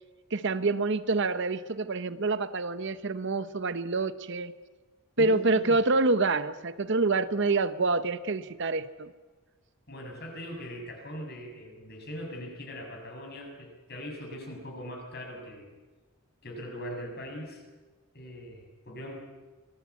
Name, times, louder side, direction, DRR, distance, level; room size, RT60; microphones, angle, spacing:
voice 1, 0.3-4.5 5.2-9.1, right 3 dB, 55° right, 12 dB, 0.9 m, -27 dB
voice 2, 5.2-5.8 9.9-15.7 16.4-17.6 18.1-19.1, equal, 45° left, 2 dB, 6.7 m, -41 dB
26.0 x 20.0 x 8.4 m, 1.3 s
head